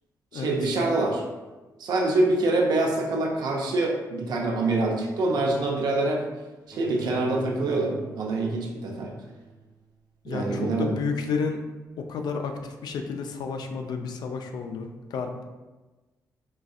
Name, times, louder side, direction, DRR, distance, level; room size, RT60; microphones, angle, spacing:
voice 1, 0.3-1.2 1.8-6.2 6.7-9.1 10.3-11.0, right 2 dB, 75° right, 0 dB, 0.6 m, -25 dB
Bowed string instrument, 6.7-9.8, right 5 dB, 25° right, 0.6 m, -43 dB
voice 2, 10.2-11.6 12.0-15.4, left 5 dB, 70° left, 5 dB, 0.4 m, -31 dB
3.9 x 2.5 x 2.3 m, 1.2 s
cardioid pair, 75°, 7 cm